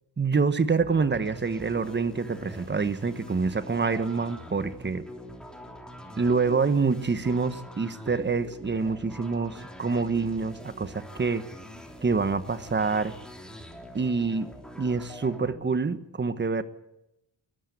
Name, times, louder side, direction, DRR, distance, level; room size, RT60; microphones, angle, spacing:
voice 1, 0.2-5.0 6.2-11.4 12.0-13.1 13.9-14.5 14.8-16.6, right 4 dB, 25° right, 12 dB, 1.2 m, -26 dB
sound 1, 0.8-15.6, equal, ahead, 3.3 m, -44 dB
20.5 x 14.5 x 9.4 m, 0.89 s
cardioid pair, 115°, 43 cm